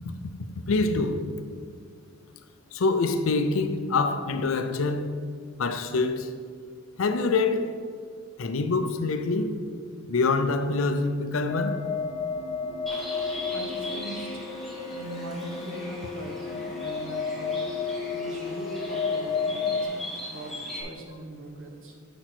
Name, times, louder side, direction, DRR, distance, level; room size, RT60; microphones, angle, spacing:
voice 1, 0.7-1.3 2.7-5.2 5.6-6.3 7.0-7.7 8.4-9.6 10.1-11.8, left 3 dB, 75° left, 0.5 m, -25 dB
sound 1, 11.5-19.8, left 5 dB, 30° left, 0.5 m, -32 dB
Bird, 12.9-20.8, left 1 dB, ahead, 1.3 m, -40 dB
voice 2, 13.5-14.5 14.9-22.0, right 2 dB, 70° right, 1.0 m, -41 dB
5.1 x 4.4 x 6.1 m
head